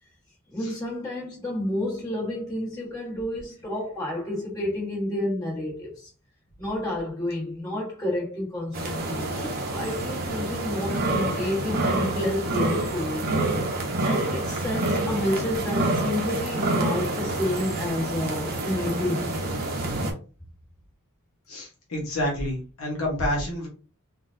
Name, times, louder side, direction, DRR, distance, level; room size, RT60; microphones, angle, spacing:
voice 1, 0.5-6.1 6.6-13.3 14.0-19.6, left 1 dB, 15° left, 1.4 m, -30 dB
sound 1, 8.7-20.1, right 2 dB, 45° right, 0.7 m, -27 dB
voice 2, 21.5-23.7, left 1 dB, 65° left, 1.0 m, -28 dB
3.7 x 2.3 x 2.5 m
head